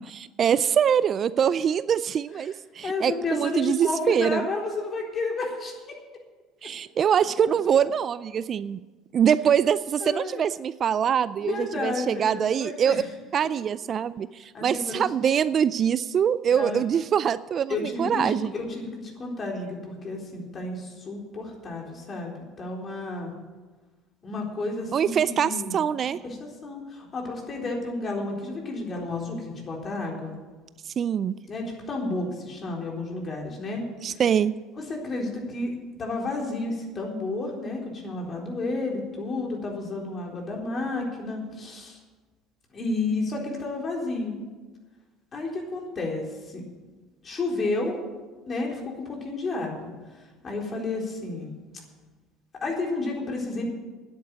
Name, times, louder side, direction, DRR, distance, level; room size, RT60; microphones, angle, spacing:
voice 1, 0.1-4.5 6.6-8.8 9.1-13.0 13.3-18.5 24.9-26.2 31.0-31.4 34.0-34.5, right 8 dB, 45° right, 16 dB, 0.4 m, -24 dB
voice 2, 2.8-6.0 6.6-6.7 10.0-10.4 11.4-13.1 13.4-13.5 14.5-15.0 16.5-16.8 17.7-23.3 24.2-25.8 26.2-30.4 31.5-33.8 34.1-34.2 34.8-42.0 42.7-44.4 45.3-46.6 47.2-48.0 48.5-49.9 50.4-51.5 52.6-53.7, left 2 dB, 35° left, 0 dB, 3.9 m, -31 dB
9.6 x 9.1 x 9.3 m, 1.3 s
supercardioid pair, 90°, 0 cm